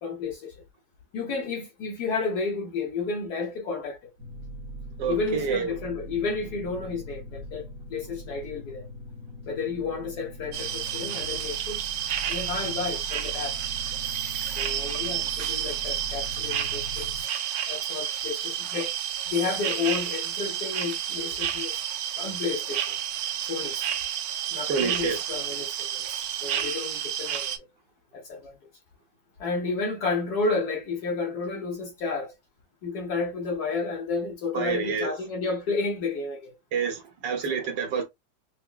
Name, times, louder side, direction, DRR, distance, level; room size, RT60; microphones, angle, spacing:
voice 1, 0.0-0.6 1.1-4.1 5.1-8.9 9.5-11.8 12.3-13.6 14.4-17.3 17.7-18.9 19.3-21.8 22.2-22.9 23.4-23.9 24.5-27.5 28.1-28.6 29.4-32.3 32.8-36.5 37.5-37.7, left 4 dB, 60° left, 1.1 m, -31 dB
sound 1, 4.2-17.2, right 1 dB, 50° right, 0.8 m, -41 dB
voice 2, 5.0-5.7 24.6-25.2 34.5-35.1 36.7-38.0, right 6 dB, 65° right, 1.4 m, -28 dB
sound 2, 10.5-27.6, right 10 dB, 85° right, 1.5 m, -30 dB
5.8 x 2.1 x 2.2 m
omnidirectional pair, 2.3 m